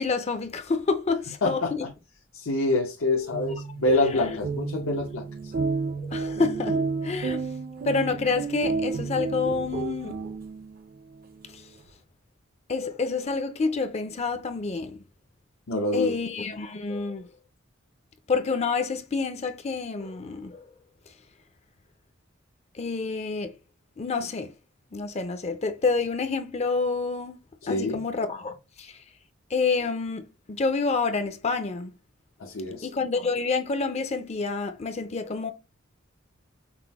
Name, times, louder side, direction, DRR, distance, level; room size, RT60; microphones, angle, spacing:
voice 1, 0.0-1.8 4.1-4.4 4.9-5.0 6.0-6.8 7.0-7.4 7.8-10.2 12.7-15.0 15.9-17.3 18.3-20.6 22.8-23.5 24.0-24.5 24.9-27.4 27.7-28.5 28.8-28.9 29.5-31.9 32.8-35.5, left 4 dB, 30° left, 0.4 m, -28 dB
voice 2, 1.4-1.9 2.3-5.5 15.7-16.2 27.6-28.0 32.4-32.9, left 2 dB, 90° left, 0.8 m, -26 dB
sound 1, 3.1-10.8, right 4 dB, 45° right, 0.5 m, -31 dB
5.8 x 2.1 x 3.4 m
head